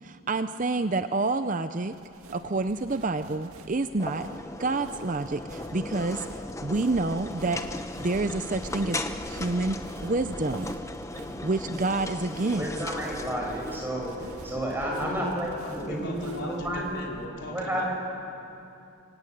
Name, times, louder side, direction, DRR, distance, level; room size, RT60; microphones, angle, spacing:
voice 1, 0.0-2.0 2.3-4.3 4.6-7.6 8.0-10.7 11.4-12.7, right 3 dB, 35° right, 10 dB, 0.6 m, -28 dB
sound 1, 1.9-17.3, right 1 dB, 80° right, 2.3 m, -46 dB
sound 2, 4.0-16.6, left 2 dB, 15° left, 0.8 m, -38 dB
voice 2, 12.6-14.1 14.4-17.0 17.5-17.9, right 1 dB, 10° right, -2 dB, 5.8 m, -31 dB
voice 3, 14.9-17.9, left 1 dB, 55° left, -1 dB, 4.5 m, -38 dB
25.0 x 24.5 x 9.2 m, 2.7 s
head